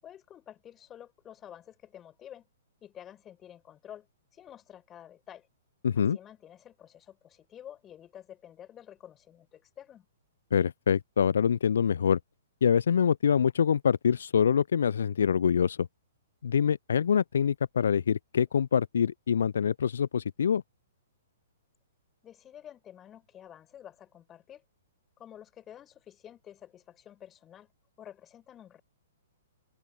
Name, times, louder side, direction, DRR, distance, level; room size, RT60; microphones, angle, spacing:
voice 1, 0.0-2.5 2.8-4.1 4.3-5.5 5.9-10.1 22.2-24.6 25.2-27.7 28.0-28.8, left 10 dB, 20° left, 7.6 m, -50 dB
voice 2, 5.8-6.2 10.5-12.2 12.6-15.9 16.4-20.6, left 7 dB, 65° left, 0.4 m, -25 dB
open air
figure-of-eight pair, 115°, 0 cm